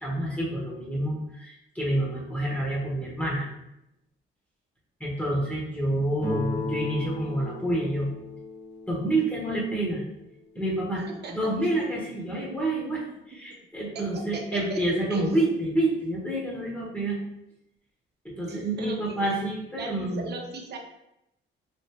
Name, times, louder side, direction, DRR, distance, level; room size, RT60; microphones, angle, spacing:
voice 1, 0.0-3.5 5.0-8.1 8.9-10.0 10.5-17.2 18.2-20.3, right 1 dB, 5° left, -5 dB, 1.1 m, -28 dB
Guitar, 6.2-11.0, left 3 dB, 30° left, 1.3 m, -37 dB
voice 2, 13.9-14.8 15.1-15.5 18.5-19.4 19.7-20.8, right 3 dB, 55° right, 2 dB, 0.7 m, -37 dB
3.2 x 2.9 x 3.0 m, 0.83 s
cardioid pair, 90°, 20 cm